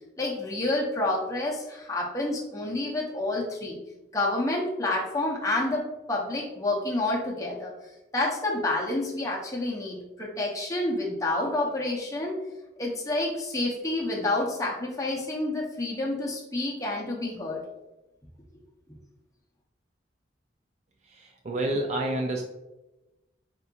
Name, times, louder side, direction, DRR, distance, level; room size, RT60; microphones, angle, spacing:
voice 1, 0.2-3.8 4.1-7.7 8.1-12.3 12.8-17.6, left 2 dB, 20° left, -3 dB, 0.7 m, -29 dB
voice 2, 21.1-22.4, right 1 dB, 40° right, 2 dB, 0.4 m, -29 dB
4.2 x 3.7 x 2.4 m, 1.0 s
head